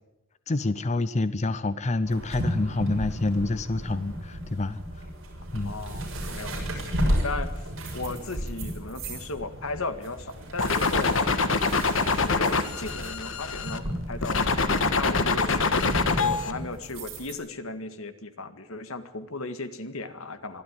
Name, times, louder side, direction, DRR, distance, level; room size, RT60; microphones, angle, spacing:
voice 1, 0.5-5.1 5.5-5.8, left 2 dB, 35° left, 14 dB, 0.6 m, -27 dB
sound 1, 2.1-17.3, equal, 65° right, 6.7 m, -34 dB
voice 2, 5.6-7.5 7.9-11.4 12.2-20.6, left 3 dB, 90° left, 10 dB, 1.8 m, -36 dB
sound 2, 10.6-13.8 14.2-16.5, left 4 dB, 70° left, 1.6 m, -25 dB
23.5 x 13.0 x 9.9 m, 0.98 s
head